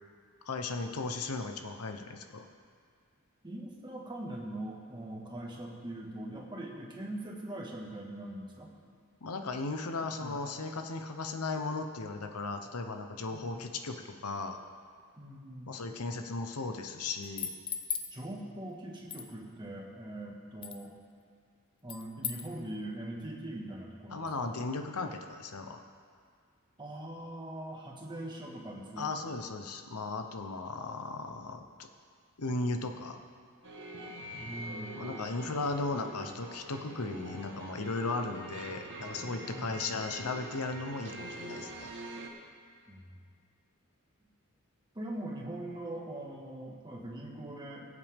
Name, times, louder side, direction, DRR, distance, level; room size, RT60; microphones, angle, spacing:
voice 1, 0.4-2.5 9.2-14.6 15.7-17.5 24.1-25.8 29.0-31.9 32.4-33.2 35.0-41.9, left 3 dB, 80° left, 6 dB, 0.9 m, -36 dB
voice 2, 3.4-8.7 10.2-10.4 13.3-13.6 15.2-15.7 18.1-20.9 21.8-24.5 26.8-29.1 34.3-34.9 38.2-38.3 38.7-38.9 39.5-39.7 42.9-43.1 45.0-48.0, right 1 dB, 20° right, -2 dB, 1.7 m, -42 dB
sound 1, 17.2-18.1 19.1-19.3 20.6-20.8 21.9-22.5, left 7 dB, 25° left, 0.5 m, -37 dB
sound 2, 33.6-42.3, right 1 dB, 60° right, 1.4 m, -44 dB
20.0 x 8.3 x 3.6 m, 2.1 s
head